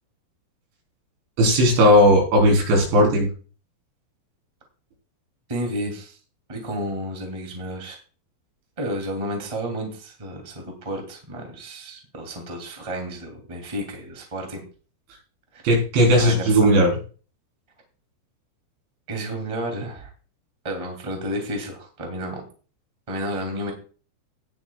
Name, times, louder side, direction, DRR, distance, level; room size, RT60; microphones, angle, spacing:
voice 1, 1.4-3.3 15.6-17.0, equal, 80° right, 0 dB, 6.0 m, -16 dB
voice 2, 5.5-6.2 6.5-8.0 8.8-14.6 15.5-15.6 16.2-16.6 19.1-20.1 20.6-22.4 23.1-23.7, equal, 15° right, 2 dB, 1.4 m, -31 dB
18.5 x 8.2 x 2.3 m, 0.38 s
omnidirectional pair, 5.2 m